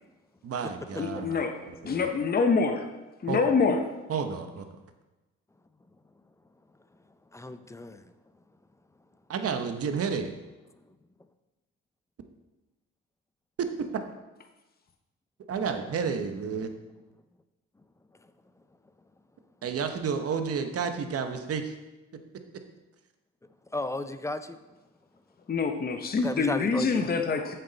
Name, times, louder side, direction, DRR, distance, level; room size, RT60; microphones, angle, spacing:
voice 1, 0.4-2.1 3.3-3.4 4.1-4.7 9.3-10.3 13.6-13.7 15.5-16.7 19.6-21.7, right 6 dB, 50° right, 7 dB, 0.9 m, -31 dB
voice 2, 1.0-2.9 3.2-3.8 25.5-27.5, left 4 dB, 30° left, 6 dB, 0.8 m, -26 dB
voice 3, 7.3-8.0 23.7-24.6 26.2-27.1, left 2 dB, 10° left, 11 dB, 0.4 m, -34 dB
7.6 x 6.8 x 4.0 m, 1.1 s
cardioid pair, 90°, 30 cm